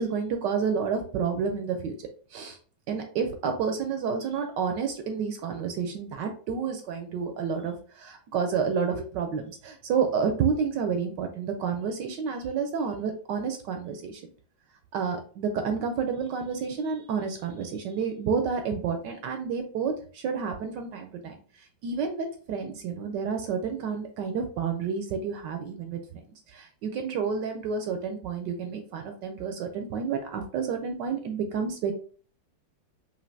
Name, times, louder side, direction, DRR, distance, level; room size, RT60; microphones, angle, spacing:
voice 1, 0.0-2.0 2.3-2.6 2.9-14.2 14.9-26.0 26.5-31.9, right 6 dB, 75° right, 6 dB, 1.1 m, -30 dB
5.1 x 2.8 x 2.6 m, 0.42 s
omnidirectional pair, 2.2 m